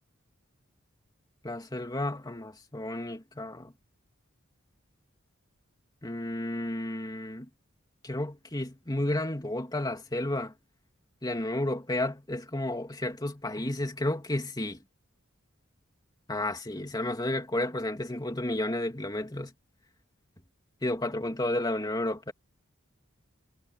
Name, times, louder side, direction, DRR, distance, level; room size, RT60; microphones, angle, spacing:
voice 1, 1.4-3.7 6.0-7.5 8.0-10.5 11.2-14.8 16.3-19.5 20.8-22.3, left 1 dB, 20° left, 2.9 m, -32 dB
head